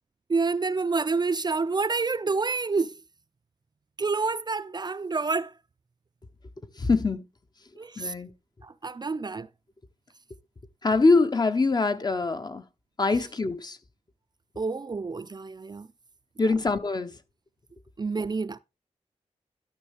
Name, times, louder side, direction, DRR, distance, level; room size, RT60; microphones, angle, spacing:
voice 1, 0.3-3.0 4.0-5.5 7.8-8.1 8.6-9.5 14.6-15.9 18.0-18.6, right 4 dB, 35° right, 0.4 m, -28 dB
voice 2, 6.8-7.3 8.0-8.3 10.8-12.6 13.0-13.8 16.4-17.2, left 3 dB, 35° left, 0.8 m, -24 dB
12.5 x 6.4 x 3.3 m
wide cardioid pair, 85°, 12 cm